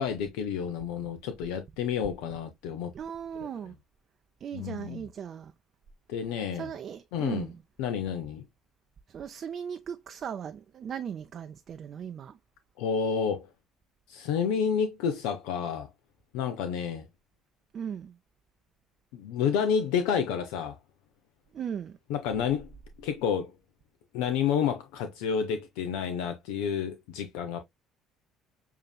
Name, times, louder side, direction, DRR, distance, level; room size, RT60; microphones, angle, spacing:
voice 1, 0.0-2.9 4.5-5.0 6.1-6.7 7.1-7.5 7.8-8.4 12.8-13.5 14.1-15.9 16.3-17.0 19.1-20.8 22.1-22.7 23.0-23.5 24.1-27.6, left 7 dB, 70° left, 0.6 m, -29 dB
voice 2, 2.9-3.8 4.4-5.5 6.5-7.6 9.1-12.4 17.7-18.2 21.5-22.0, right 8 dB, 50° right, 0.5 m, -38 dB
6.8 x 2.8 x 2.3 m
hypercardioid pair, 60°, 0 cm